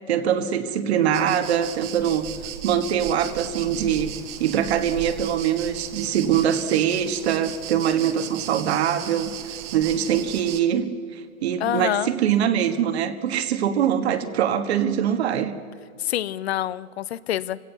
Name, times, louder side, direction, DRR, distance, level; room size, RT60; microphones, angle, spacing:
voice 1, 0.1-2.2 2.6-4.1 4.4-9.3 9.7-15.5, right 9 dB, 50° right, 9 dB, 1.6 m, -23 dB
sound 1, 1.1-10.6, right 10 dB, 25° right, 1.1 m, -37 dB
voice 2, 11.6-12.1 16.0-17.6, left 12 dB, 45° left, 18 dB, 0.8 m, -26 dB
27.5 x 16.5 x 7.0 m, 2.2 s
hypercardioid pair, 135°, 42 cm